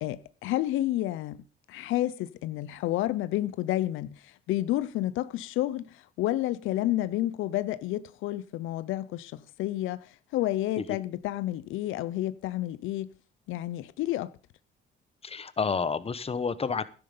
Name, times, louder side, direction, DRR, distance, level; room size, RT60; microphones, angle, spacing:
voice 1, 0.0-1.4 1.7-13.1 13.5-14.3, left 14 dB, 90° left, 0.6 m, -30 dB
voice 2, 15.2-16.8, left 5 dB, 30° left, 1.1 m, -30 dB
11.5 x 10.5 x 5.4 m
cardioid pair, 90°, 20 cm